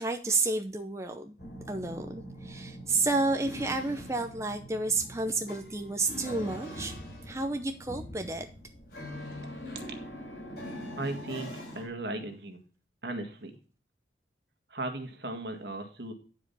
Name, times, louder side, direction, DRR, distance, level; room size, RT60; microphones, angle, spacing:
voice 1, 0.0-1.4 1.7-6.9 7.3-8.5, right 3 dB, 15° right, 5 dB, 0.7 m, -31 dB
sound 1, 1.4-11.9, equal, 55° left, 5.7 m, -42 dB
voice 2, 11.0-12.6 13.0-13.6 14.7-16.1, right 2 dB, 65° right, 5 dB, 1.7 m, -37 dB
10.0 x 5.0 x 5.5 m, 0.38 s
head